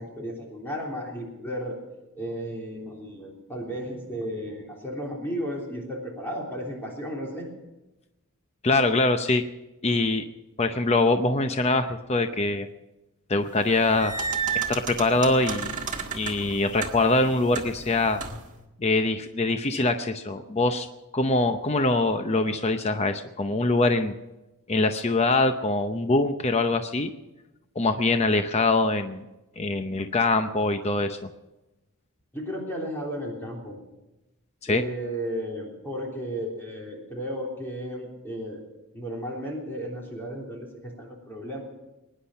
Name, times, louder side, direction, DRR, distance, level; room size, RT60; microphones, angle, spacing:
voice 1, 0.0-1.8 2.1-7.5 32.3-33.8 34.7-38.6 38.9-41.6, equal, 10° left, -2 dB, 3.4 m, -34 dB
voice 2, 8.6-9.4 9.8-10.2 10.6-12.7 13.3-14.1 14.5-15.7 16.1-18.2 18.8-20.9 21.1-24.1 24.7-27.1 27.8-29.2 29.6-31.2 34.6-34.8, left 2 dB, 30° left, 8 dB, 0.7 m, -23 dB
sound 1, 13.6-18.5, right 6 dB, 35° right, 1.7 m, -33 dB
23.0 x 10.5 x 5.7 m, 1.0 s
head